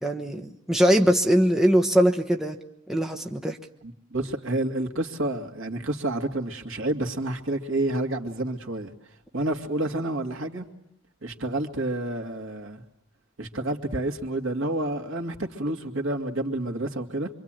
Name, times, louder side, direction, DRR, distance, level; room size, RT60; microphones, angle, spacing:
voice 1, 0.0-2.6 2.9-3.6, equal, ahead, 2 dB, 1.2 m, -21 dB
voice 2, 3.8-8.9 9.3-10.7 11.2-12.8 13.4-17.3, right 1 dB, 75° right, 3 dB, 2.5 m, -29 dB
25.5 x 25.0 x 9.1 m, 0.73 s
head